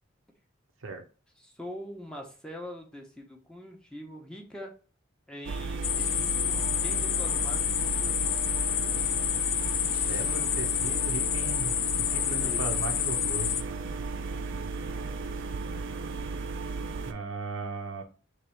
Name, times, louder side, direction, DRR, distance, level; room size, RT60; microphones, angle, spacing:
voice 1, 1.4-4.7 5.3-8.3 12.3-12.6, left 1 dB, 5° left, 0 dB, 0.8 m, -43 dB
sound 1, 5.4-17.1, right 3 dB, 65° right, 0.4 m, -34 dB
sound 2, 5.8-13.6, left 12 dB, 50° left, 0.3 m, -29 dB
voice 2, 10.1-13.7 17.0-18.0, right 3 dB, 85° right, 4 dB, 0.8 m, -37 dB
3.3 x 3.2 x 4.5 m, 0.36 s
head